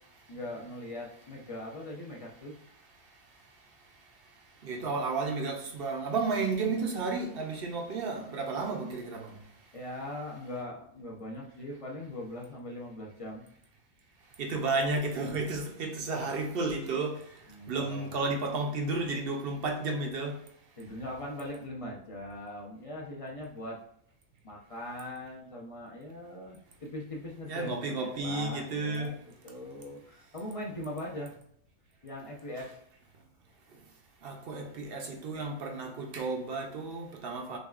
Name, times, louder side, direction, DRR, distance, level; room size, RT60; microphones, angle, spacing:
voice 1, 0.3-2.5 9.7-13.5 17.5-18.1 20.8-23.8 24.4-29.2 29.4-31.3 32.0-32.8, left 1 dB, 40° left, 0.5 m, -40 dB
voice 2, 4.6-9.3 14.4-17.2 17.7-20.4 27.5-29.2 34.2-37.6, right 3 dB, 55° right, 0.7 m, -32 dB
6.3 x 2.3 x 2.4 m
omnidirectional pair, 1.5 m